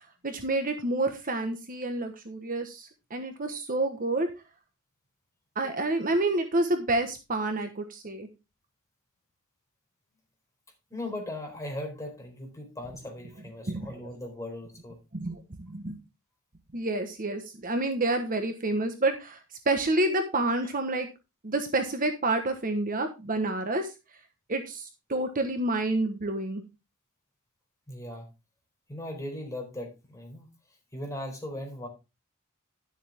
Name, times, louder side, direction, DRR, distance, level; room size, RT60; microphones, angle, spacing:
voice 1, 0.0-4.3 5.6-8.3 13.7-13.9 15.1-16.0 16.7-19.4 19.6-21.1 21.4-23.9 24.5-26.6, right 2 dB, 40° right, 6 dB, 1.3 m, -29 dB
voice 2, 10.9-15.0 20.6-20.7 27.9-28.3 28.9-30.5 30.9-31.9, left 1 dB, 15° left, 2 dB, 4.3 m, -38 dB
12.0 x 7.5 x 3.5 m, 0.27 s
head